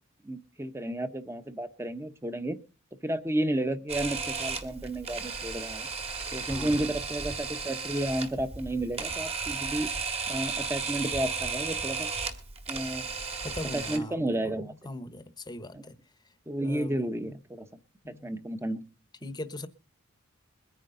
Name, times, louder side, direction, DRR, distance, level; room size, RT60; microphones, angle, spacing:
voice 1, 0.2-2.6 3.0-5.9 6.3-9.9 10.3-12.1 12.7-13.1 13.7-14.7 15.7-15.8 16.5-17.7 18.2-18.8, right 1 dB, 10° right, 1.0 m, -32 dB
Camera, 3.9-14.0, right 5 dB, 30° right, 1.9 m, -34 dB
voice 2, 6.5-6.9 13.4-14.4 14.8-15.9 16.6-17.1 18.0-18.3 19.2-19.7, left 1 dB, 20° left, 1.1 m, -40 dB
22.0 x 9.8 x 3.9 m
head